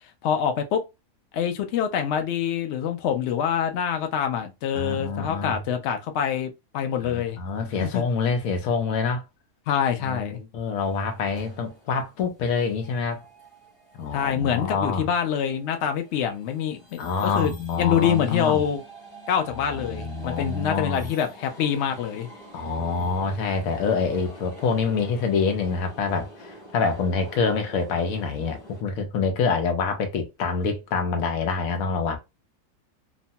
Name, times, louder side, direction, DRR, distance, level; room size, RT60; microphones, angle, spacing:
voice 1, 0.2-0.8 1.3-7.4 7.8-8.0 9.7-10.4 14.1-17.5 17.8-18.8 19.3-22.3, left 8 dB, 90° left, 0.6 m, -25 dB
voice 2, 4.7-5.6 7.0-9.2 10.0-13.2 14.0-15.1 17.0-18.6 19.6-21.1 22.5-32.2, left 5 dB, 65° left, 1.0 m, -26 dB
sound 1, 10.8-28.8, right 1 dB, 40° left, 0.9 m, -46 dB
3.0 x 2.2 x 2.7 m
omnidirectional pair, 1.8 m